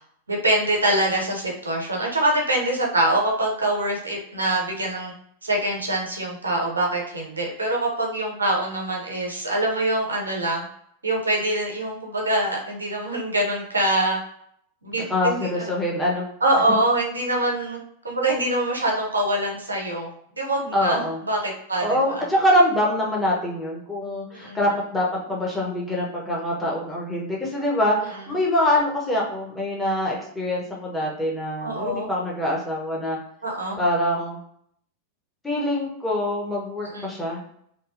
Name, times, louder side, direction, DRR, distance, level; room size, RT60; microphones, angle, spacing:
voice 1, 0.3-5.1 5.4-10.7 11.0-14.2 14.8-15.7 16.4-17.8 18.0-20.1 20.4-22.3 24.3-24.6 31.6-32.1 33.4-33.9 36.8-37.1, right 1 dB, 75° right, -1 dB, 0.6 m, -24 dB
voice 2, 15.1-16.3 20.7-21.2 21.8-33.2 33.8-34.4 35.4-37.5, left 1 dB, 10° left, -4 dB, 0.7 m, -24 dB
2.7 x 2.3 x 2.4 m, 0.69 s
figure-of-eight pair, 90°, 0 cm